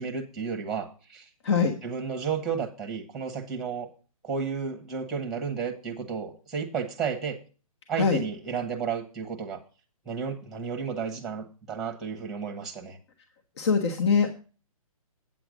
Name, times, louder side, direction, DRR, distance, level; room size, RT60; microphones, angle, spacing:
voice 1, 0.0-1.3 1.8-3.9 4.2-7.4 7.9-9.6 10.0-13.0, right 6 dB, ahead, 3 dB, 1.2 m, -32 dB
voice 2, 13.6-14.3, left 5 dB, 45° left, 6 dB, 1.3 m, -23 dB
8.8 x 7.9 x 5.1 m, 0.36 s
hypercardioid pair, 160°, 19 cm